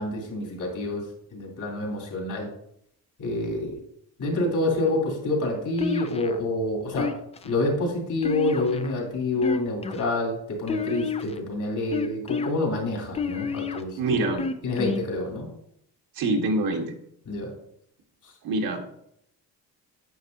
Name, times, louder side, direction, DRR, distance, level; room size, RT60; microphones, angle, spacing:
voice 1, 0.0-2.5 3.2-3.8 4.2-7.1 7.4-14.0 14.6-15.5 17.3-17.5 18.2-18.3, left 2 dB, 60° left, -1 dB, 3.1 m, -27 dB
sound 1, 5.8-6.4 7.0-7.5 8.2-8.9 9.4-10.0 10.7-11.4 11.9-12.5 13.1-13.8 14.4-15.0, left 5 dB, 20° left, 0.3 m, -29 dB
voice 2, 14.0-14.4 16.1-16.9 18.4-18.8, right 2 dB, 85° right, 2 dB, 1.5 m, -25 dB
9.4 x 8.1 x 2.7 m, 0.73 s
cardioid pair, 160°, 36 cm